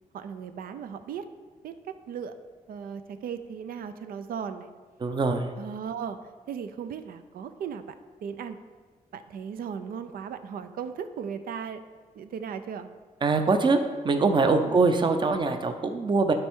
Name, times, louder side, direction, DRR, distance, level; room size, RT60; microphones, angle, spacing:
voice 1, 0.1-1.2 1.6-2.3 2.7-4.7 5.6-6.2 6.5-7.9 8.2-8.6 9.1-11.8 12.1-12.9 14.6-14.8, right 7 dB, 90° right, 10 dB, 0.5 m, -36 dB
voice 2, 5.0-5.5 13.2-13.8 14.0-16.3, right 3 dB, 35° right, 7 dB, 0.6 m, -23 dB
12.0 x 4.4 x 3.6 m, 1.4 s
wide cardioid pair, 140°, 14 cm